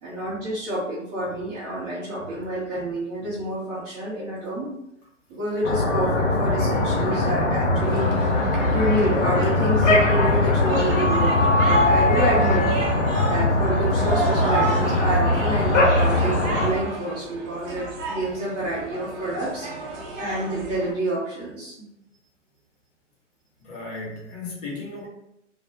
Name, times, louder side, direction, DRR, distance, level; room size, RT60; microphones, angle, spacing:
voice 1, 0.0-4.7 5.3-8.2 8.7-12.6 13.3-19.7 20.2-21.9, right 1 dB, 15° right, -10 dB, 0.4 m, -28 dB
sound 1, 5.6-16.7, left 2 dB, 75° left, 0.7 m, -21 dB
sound 2, 7.8-20.9, right 2 dB, 45° right, 0.9 m, -32 dB
voice 2, 23.6-25.1, left 3 dB, 35° left, -4 dB, 1.0 m, -35 dB
2.3 x 2.0 x 3.2 m, 0.82 s
figure-of-eight pair, 115°, 37 cm